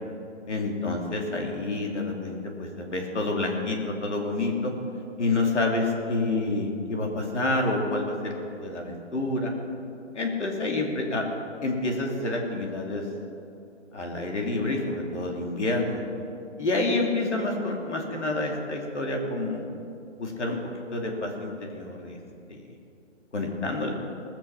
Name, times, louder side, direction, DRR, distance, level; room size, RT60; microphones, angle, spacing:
voice 1, 0.5-4.7 5.2-9.5 10.1-11.2 11.6-13.0 13.9-16.0 16.6-19.6 20.2-20.6 20.9-22.2 22.5-22.6 23.3-23.9, left 2 dB, 70° left, 1 dB, 2.8 m, -28 dB
19.5 x 7.5 x 6.0 m, 2.6 s
hypercardioid pair, 180°, 37 cm